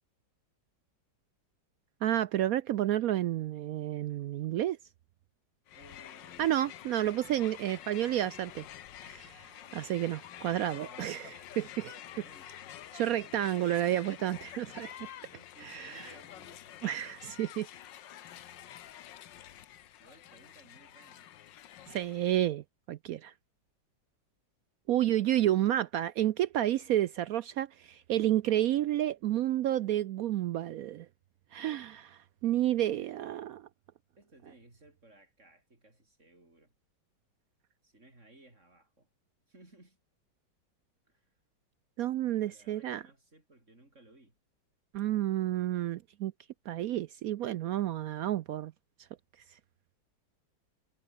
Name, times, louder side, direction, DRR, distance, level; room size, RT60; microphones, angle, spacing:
voice 1, 2.0-4.8 6.4-8.7 9.0-9.4 9.7-11.2 11.6-11.9 12.9-15.1 15.6-16.1 16.8-17.7 21.9-23.3 24.9-31.1 31.5-33.7 42.0-43.0 44.9-46.3 46.7-48.7, right 12 dB, 70° right, 0.8 m, -30 dB
Crowd, 5.7-22.4, left 11 dB, 80° left, 1.7 m, -49 dB
voice 2, 5.7-6.5 9.6-9.9 10.8-11.4 11.9-12.6 15.3-16.7 20.0-21.3 24.9-25.4 32.9-33.1 34.2-36.7 37.8-39.1 39.5-40.0 41.1-41.3 42.4-44.4, right 2 dB, 40° right, 6.4 m, -59 dB
omnidirectional pair, 2.0 m